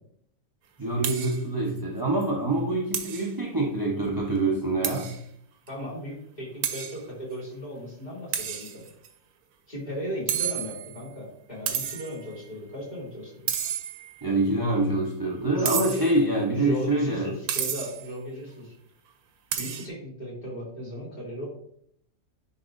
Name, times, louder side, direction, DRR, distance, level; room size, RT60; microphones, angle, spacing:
voice 1, 0.8-5.1 14.2-17.3, right 2 dB, 20° right, -3 dB, 0.7 m, -25 dB
sound 1, 1.0-1.4 1.8-1.9 2.2-2.3 2.9-3.3 4.8-5.2 5.7-5.8 6.6-7.0 8.3-9.1 10.3-11.0 11.7-12.2 13.5-14.2 15.6-16.2 17.5-18.1 19.5-19.9, right 8 dB, 80° right, 1.2 m, -31 dB
voice 2, 5.7-8.8 9.7-13.5 15.5-16.1 16.5-18.8 19.6-21.5, equal, 25° left, -7 dB, 3.0 m, -36 dB
10.0 x 4.1 x 2.6 m, 0.67 s
omnidirectional pair, 1.6 m